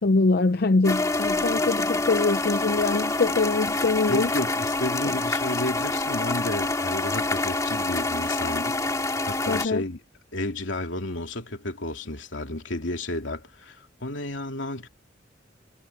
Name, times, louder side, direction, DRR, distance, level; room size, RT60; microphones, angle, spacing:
voice 1, 0.0-4.3 9.5-9.8, left 3 dB, 55° left, 0.5 m, -23 dB
sound 1, 0.8-9.7, left 2 dB, 15° left, 2.2 m, -26 dB
voice 2, 4.1-8.8 9.3-10.0 10.3-14.9, left 1 dB, 80° left, 2.7 m, -32 dB
head